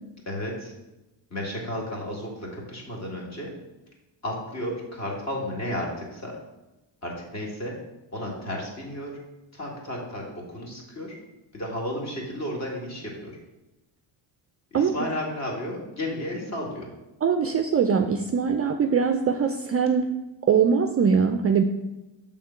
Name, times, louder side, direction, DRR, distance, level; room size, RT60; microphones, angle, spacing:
voice 1, 0.3-0.7 1.3-3.5 4.2-6.3 7.0-7.7 8.1-9.1 9.5-11.2 11.5-13.4 14.7-16.9, left 1 dB, 35° left, -2 dB, 2.1 m, -33 dB
voice 2, 17.2-20.0 20.5-21.6, right 6 dB, 35° right, 6 dB, 0.4 m, -22 dB
6.6 x 3.8 x 5.8 m, 1.0 s
cardioid pair, 120°, 45 cm